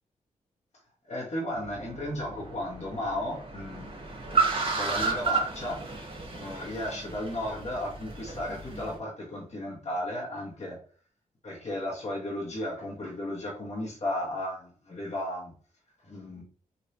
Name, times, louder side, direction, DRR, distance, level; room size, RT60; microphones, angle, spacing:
voice 1, 1.1-4.0 4.2-4.3 4.8-5.8 6.4-10.8 11.4-15.5 16.0-16.4, left 1 dB, 50° left, -5 dB, 1.4 m, -34 dB
Car, 1.5-8.9, right 4 dB, 40° right, 1.2 m, -32 dB
3.2 x 2.8 x 2.8 m, 0.42 s
cardioid pair, 55°, 15 cm